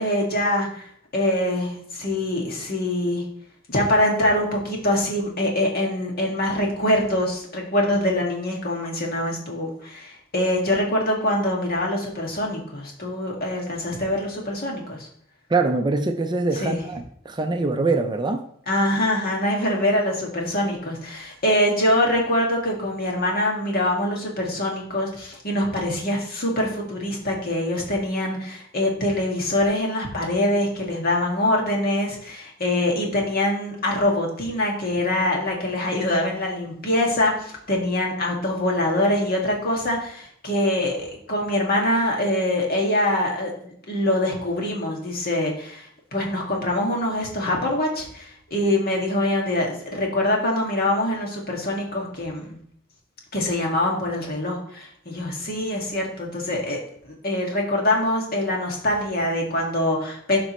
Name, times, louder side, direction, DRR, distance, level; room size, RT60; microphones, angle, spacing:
voice 1, 0.0-3.2 3.7-15.1 16.6-16.8 18.7-52.6 53.3-56.8 57.2-60.4, left 1 dB, 45° left, -1 dB, 2.0 m, -24 dB
voice 2, 15.5-18.4, right 3 dB, 20° right, 6 dB, 0.5 m, -23 dB
12.5 x 5.2 x 3.1 m, 0.64 s
head